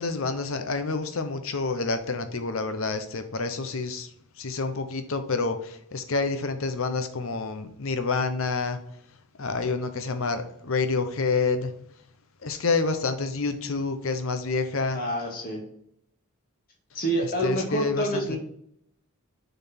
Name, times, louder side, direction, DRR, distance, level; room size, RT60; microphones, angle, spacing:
voice 1, 0.0-4.1 4.4-8.8 9.4-11.7 12.4-15.0 17.4-18.4, left 4 dB, 65° left, 8 dB, 0.8 m, -28 dB
voice 2, 14.9-15.6 16.9-18.4, right 1 dB, 40° left, 0 dB, 1.7 m, -28 dB
6.6 x 4.1 x 4.3 m, 0.70 s
head